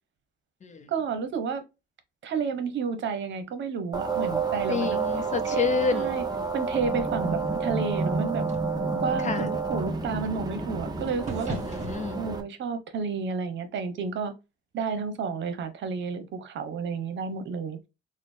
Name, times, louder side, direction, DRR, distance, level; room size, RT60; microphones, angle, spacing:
voice 1, 0.9-1.6 2.2-5.0 5.4-5.6 5.9-6.2 6.5-8.5 9.0-11.6 12.1-14.3 14.7-17.8, right 5 dB, 70° right, 0.9 m, -31 dB
sound 1, 3.9-12.4, right 4 dB, 20° right, 0.9 m, -29 dB
voice 2, 4.7-6.1 9.2-9.5 11.5-12.2, left 5 dB, 35° left, 0.6 m, -29 dB
sound 2, 6.1-12.0, right 2 dB, 35° right, 2.0 m, -43 dB
4.1 x 2.2 x 3.3 m
cardioid pair, 90°, 20 cm